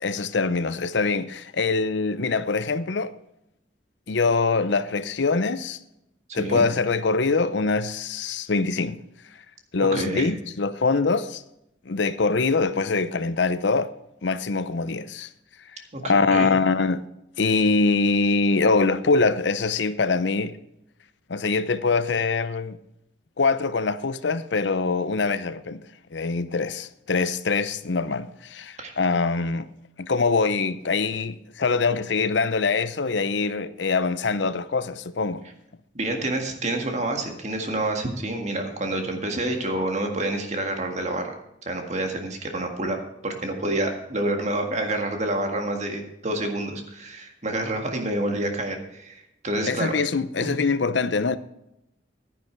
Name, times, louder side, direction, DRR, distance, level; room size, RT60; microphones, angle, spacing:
voice 1, 0.0-3.1 4.1-5.8 6.3-9.0 9.7-11.4 11.9-13.9 14.2-15.3 15.7-17.0 17.4-20.5 21.3-22.8 23.4-25.8 26.1-29.7 30.0-35.4 49.7-51.4, left 4 dB, 70° left, 0.7 m, -23 dB
voice 2, 6.3-6.7 9.9-10.3 15.9-16.0 16.3-16.5 28.8-28.9 35.9-41.3 41.7-43.0 43.2-49.9 50.4-50.6, right 1 dB, 40° right, 1.8 m, -28 dB
11.0 x 10.0 x 4.5 m
head